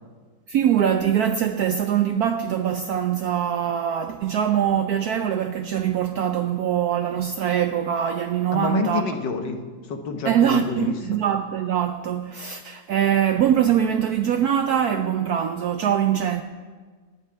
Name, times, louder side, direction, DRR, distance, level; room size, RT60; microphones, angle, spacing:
voice 1, 0.5-9.1 10.2-16.4, right 9 dB, 70° right, 0.9 m, -23 dB
voice 2, 8.5-9.6 9.9-10.9, left 5 dB, 65° left, 1.7 m, -28 dB
16.5 x 5.5 x 9.0 m
omnidirectional pair, 2.1 m